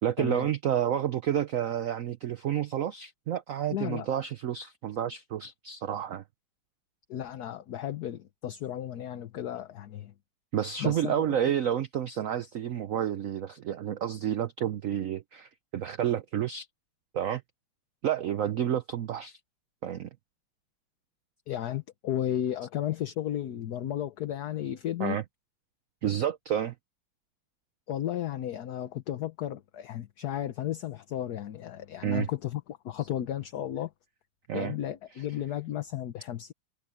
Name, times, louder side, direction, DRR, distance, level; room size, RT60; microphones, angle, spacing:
voice 1, 0.0-6.2 10.5-16.7 17.1-17.4 18.0-19.4 19.8-20.1 25.0-25.2 26.0-26.7 32.0-32.3 34.5-34.7 35.2-35.3, right 10 dB, 75° right, 0.7 m, -30 dB
voice 2, 3.7-4.1 7.1-10.1 10.8-11.2 21.5-25.2 27.9-33.9 34.5-36.5, left 11 dB, 60° left, 1.2 m, -34 dB
omnidirectional pair, 2.2 m